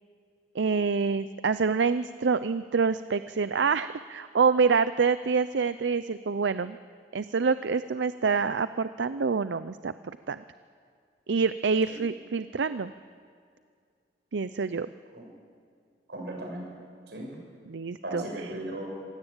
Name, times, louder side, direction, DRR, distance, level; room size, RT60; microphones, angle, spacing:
voice 1, 0.5-6.8 7.1-10.4 11.3-12.9 14.3-14.9 17.7-18.2, right 5 dB, 85° right, 13 dB, 0.6 m, -26 dB
voice 2, 16.1-16.7 17.1-17.3 18.0-18.9, right 1 dB, 70° right, 0 dB, 7.6 m, -36 dB
26.0 x 17.0 x 8.9 m, 2.2 s
head